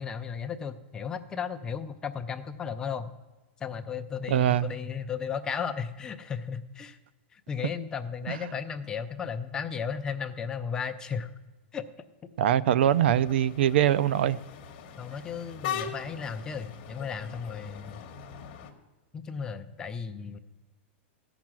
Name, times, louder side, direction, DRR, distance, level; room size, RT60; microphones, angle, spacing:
voice 1, 0.0-3.1 3.6-7.0 7.3-11.3 11.7-11.9 12.7-12.8 15.0-18.0 19.1-20.4, left 6 dB, 10° left, 0.4 m, -35 dB
voice 2, 4.3-4.7 8.3-8.4 12.4-14.4, right 11 dB, 60° right, 0.4 m, -23 dB
sound 1, 12.8-18.7, left 8 dB, 35° left, 1.1 m, -40 dB
15.0 x 6.0 x 7.4 m
supercardioid pair, 175°, 7 cm